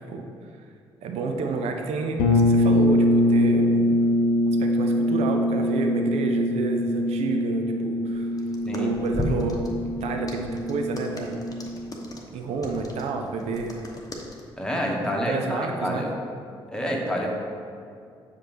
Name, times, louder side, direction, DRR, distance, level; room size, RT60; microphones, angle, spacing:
voice 1, 1.0-4.0 4.5-8.3 8.7-11.4 12.3-13.8 15.0-16.1, right 4 dB, 55° right, 4 dB, 0.6 m, -30 dB
sound 1, 2.2-11.9, left 1 dB, 65° left, 0.7 m, -23 dB
sound 2, 8.1-14.4, left 1 dB, 25° left, 0.9 m, -36 dB
voice 2, 8.6-9.0 14.6-16.1 16.7-17.3, equal, 5° left, -1 dB, 1.1 m, -28 dB
6.9 x 5.0 x 3.1 m, 2.4 s
figure-of-eight pair, 45°, 13 cm